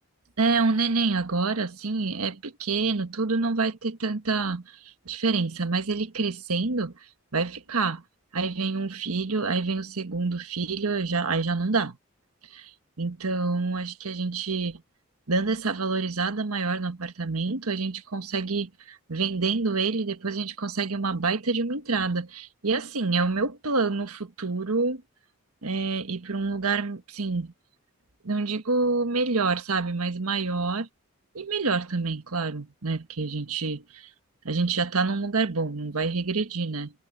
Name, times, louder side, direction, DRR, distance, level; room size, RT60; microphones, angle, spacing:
voice 1, 0.4-6.9 7.3-8.0 8.3-12.0 12.5-12.7 13.0-14.8 15.3-25.0 25.6-27.5 28.2-30.9 31.3-34.1 34.4-36.9, right 4 dB, 90° right, 1.4 m, -27 dB
head